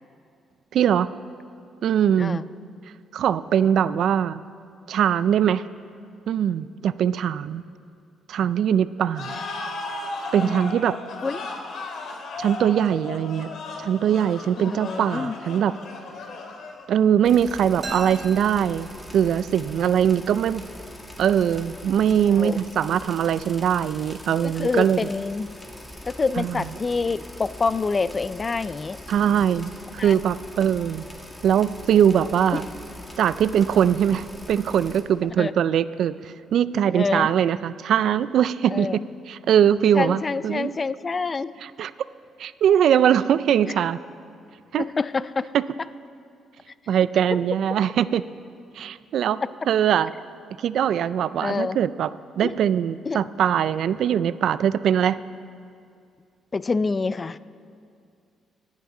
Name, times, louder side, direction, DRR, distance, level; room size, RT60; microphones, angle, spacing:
voice 1, 0.7-1.1 1.8-2.4 3.1-4.4 4.9-5.6 6.3-7.6 8.3-9.4 10.3-11.0 12.4-13.5 13.8-15.7 16.9-18.9 19.1-20.6 21.2-25.0 26.4-26.6 29.1-29.7 30.0-31.0 31.4-32.7 33.2-38.9 39.3-40.7 41.6-41.9 42.4-44.0 44.7-44.9 45.5-45.6 46.9-48.2 48.7-49.4 49.7-50.1 50.6-52.1 52.4-55.2, right 9 dB, 70° right, 15 dB, 0.4 m, -21 dB
voice 2, 2.2-2.5 10.4-10.7 11.2-11.5 14.6-15.4 22.2-22.7 24.6-25.5 26.0-29.0 30.0-30.2 32.5-32.6 35.4-35.5 36.9-37.3 38.7-39.1 39.9-41.5 43.7-43.8 44.8-45.5 51.4-51.8 52.4-52.5 53.1-53.2 56.5-57.4, left 4 dB, 30° left, 15 dB, 0.4 m, -27 dB
sound 1, 9.1-17.0, left 2 dB, 70° left, 2.2 m, -35 dB
sound 2, 17.2-35.0, left 1 dB, 10° left, 1.8 m, -42 dB
sound 3, 17.8-19.5, right 2 dB, 40° right, 3.8 m, -38 dB
24.5 x 10.5 x 3.8 m, 2.3 s
cardioid pair, 90°, 0 cm